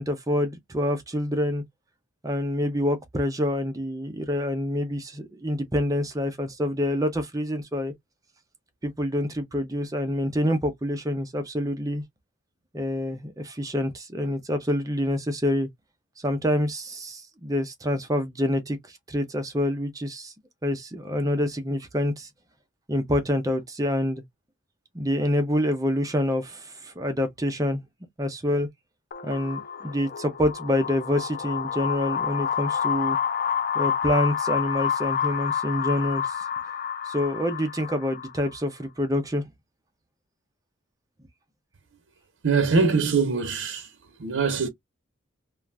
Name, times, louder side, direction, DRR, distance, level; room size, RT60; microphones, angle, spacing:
voice 1, 0.0-1.6 2.2-7.9 8.8-12.0 12.7-15.7 16.2-20.3 20.6-22.3 22.9-24.2 24.9-27.8 28.2-28.7 29.2-33.2 33.7-36.4 37.0-39.4, left 1 dB, 15° right, 0.5 m, -27 dB
sound 1, 29.1-38.6, left 8 dB, 45° left, 0.4 m, -29 dB
voice 2, 42.4-43.9 44.2-44.7, right 4 dB, 70° right, 0.7 m, -23 dB
2.4 x 2.4 x 3.2 m
head